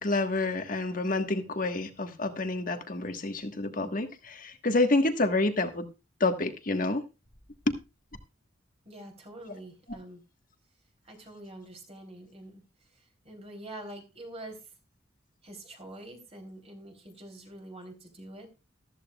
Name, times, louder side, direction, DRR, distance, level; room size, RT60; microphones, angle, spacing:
voice 1, 0.0-5.9 6.2-7.0 7.7-7.8, left 2 dB, 45° left, 1.4 m, -28 dB
voice 2, 8.8-10.2 11.0-12.6 12.9-14.6 15.4-18.5, right 1 dB, 30° right, 3.3 m, -45 dB
14.0 x 14.0 x 2.3 m
head